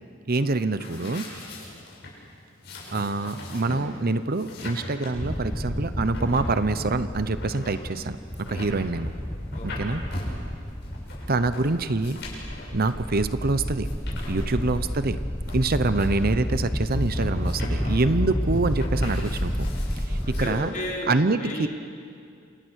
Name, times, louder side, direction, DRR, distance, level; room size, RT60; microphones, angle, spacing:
voice 1, 0.3-1.3 2.9-9.1 9.6-10.0 11.3-12.2 12.7-13.9 14.3-15.2 15.5-19.7 20.1-20.7 21.1-21.7, right 3 dB, 50° right, 12 dB, 0.9 m, -25 dB
sound 1, 0.8-20.6, left 1 dB, 60° left, 7.7 m, -41 dB
sound 2, 5.1-20.5, equal, 10° left, 1.1 m, -30 dB
voice 2, 9.5-9.9 14.4-14.7 15.8-16.0 17.8-18.2 20.0-21.7, left 1 dB, 40° left, -3 dB, 4.9 m, -36 dB
28.5 x 28.0 x 6.5 m, 2.3 s
head